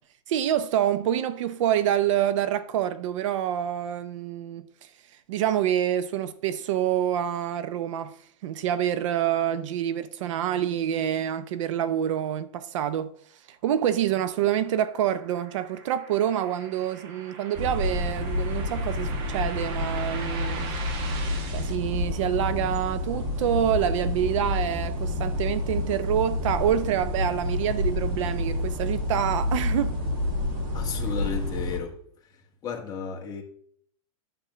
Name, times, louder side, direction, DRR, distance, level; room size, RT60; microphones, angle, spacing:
voice 1, 0.3-4.6 5.3-8.2 8.4-13.1 13.5-20.7 21.5-30.0, right 10 dB, 60° right, 0.6 m, -27 dB
sound 1, 14.0-21.8, right 5 dB, 45° right, 1.4 m, -41 dB
sound 2, 17.6-31.8, left 2 dB, 25° right, 1.7 m, -29 dB
voice 2, 30.7-32.0 32.6-33.4, left 6 dB, 20° left, 1.5 m, -33 dB
10.0 x 3.7 x 6.8 m
supercardioid pair, 160°, 18 cm